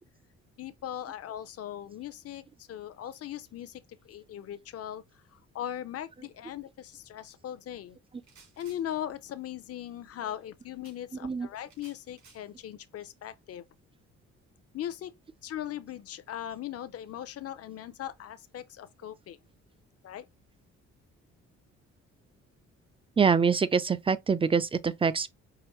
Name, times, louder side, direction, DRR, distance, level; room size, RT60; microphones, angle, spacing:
voice 1, 0.6-5.0 5.3-8.0 8.6-13.6 14.7-15.1 15.4-19.4 20.0-20.2, left 11 dB, 55° left, 0.6 m, -39 dB
sound 1, 8.2-8.8 10.8-11.0 11.6-12.4, right 5 dB, 70° right, 2.1 m, -57 dB
voice 2, 23.2-25.3, right 5 dB, 20° right, 0.4 m, -25 dB
4.9 x 2.6 x 3.0 m
cardioid pair, 95°, 29 cm